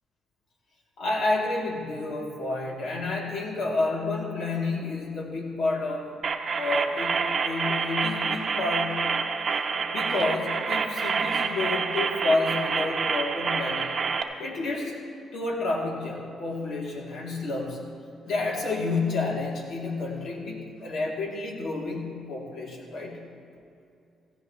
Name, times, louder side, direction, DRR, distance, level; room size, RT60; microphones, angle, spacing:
voice 1, 1.0-6.1 6.5-9.1 9.9-14.0 14.4-15.0 15.3-17.8 18.2-23.2, left 2 dB, 70° left, -2 dB, 2.8 m, -30 dB
sound 1, 6.2-14.2, right 5 dB, 45° right, 0.8 m, -28 dB
16.0 x 14.5 x 3.1 m, 2.5 s
cardioid pair, 90°, 0 cm